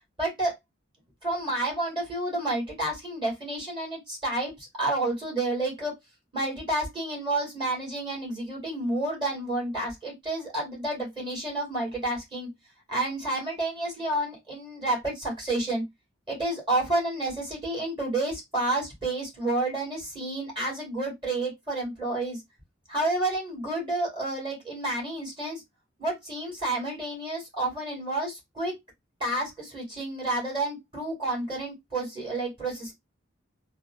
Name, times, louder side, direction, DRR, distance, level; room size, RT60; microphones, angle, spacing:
voice 1, 0.2-0.5 1.2-5.9 6.3-12.5 12.9-15.8 16.3-22.4 22.9-25.6 26.0-28.7 29.2-32.9, right 2 dB, 25° right, 2.3 m, -30 dB
4.0 x 2.1 x 2.5 m
head